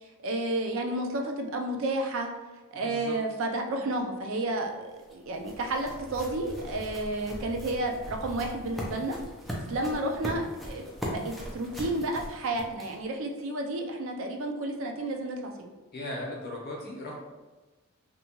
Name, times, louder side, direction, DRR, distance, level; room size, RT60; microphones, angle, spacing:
voice 1, 0.0-2.3 2.7-9.2 9.7-10.9 11.1-15.7, right 2 dB, 65° right, 3 dB, 0.4 m, -31 dB
voice 2, 2.7-3.2 15.9-17.1, left 1 dB, 50° left, -2 dB, 0.7 m, -37 dB
sound 1, 4.6-13.2, equal, ahead, 0.4 m, -40 dB
2.7 x 2.2 x 2.9 m, 1.2 s
head